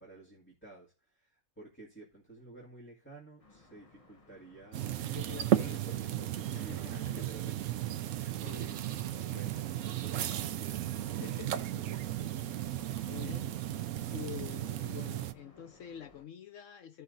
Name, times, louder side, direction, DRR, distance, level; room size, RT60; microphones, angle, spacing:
voice 1, 0.0-5.0 5.5-7.7 8.0-9.1 9.3-10.8 11.1-12.6, right 3 dB, 10° left, 1.9 m, -52 dB
sound 1, 3.4-16.3, left 3 dB, 25° left, 1.0 m, -59 dB
sound 2, 4.7-15.3, right 12 dB, 65° right, 0.9 m, -35 dB
voice 2, 5.1-5.8 6.5-7.2 8.4-8.7 11.2-11.7 13.1-13.5 14.1-17.0, left 11 dB, 65° left, 0.9 m, -47 dB
15.0 x 5.7 x 2.6 m
omnidirectional pair, 1.5 m